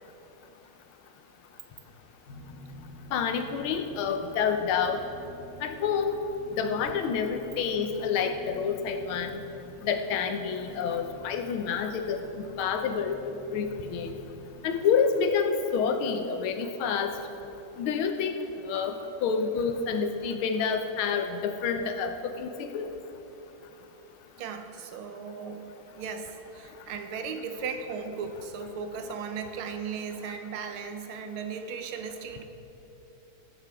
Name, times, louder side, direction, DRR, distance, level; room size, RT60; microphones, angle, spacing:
sound 1, 2.3-14.8, left 1 dB, 55° left, 0.8 m, -49 dB
voice 1, 3.1-5.0 5.6-6.1 6.6-9.4 9.8-12.2 12.6-13.2 13.5-14.1 14.6-17.1 17.8-18.3 18.7-19.0 19.2-22.9, left 6 dB, 85° left, 7 dB, 1.6 m, -28 dB
voice 2, 24.4-25.7 26.0-32.4, right 5 dB, 85° right, 7 dB, 1.6 m, -36 dB
16.0 x 8.0 x 3.6 m, 3.0 s
omnidirectional pair, 2.2 m